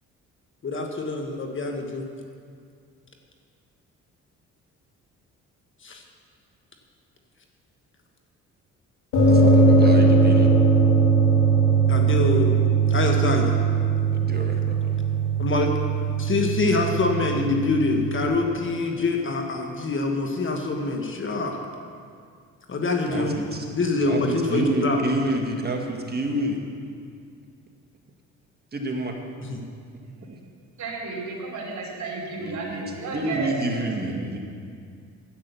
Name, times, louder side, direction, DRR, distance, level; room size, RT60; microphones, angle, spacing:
voice 1, 0.6-2.1 5.8-6.0 11.9-12.6 12.9-13.5 15.4-15.7 16.2-21.6 22.7-23.3 23.7-25.0 29.4-29.6, left 3 dB, 40° left, 3 dB, 1.3 m, -25 dB
sound 1, 9.1-18.2, right 4 dB, 90° left, 2.7 m, -20 dB
voice 2, 9.3-10.5 14.1-15.0 23.1-23.7 24.0-26.6 28.7-29.1 30.3-30.4 32.3-34.4, right 1 dB, 30° right, 2 dB, 1.7 m, -29 dB
voice 3, 30.8-34.0, right 3 dB, 70° right, -1 dB, 3.2 m, -33 dB
10.0 x 8.7 x 6.9 m, 2.2 s
cardioid pair, 90°, 30 cm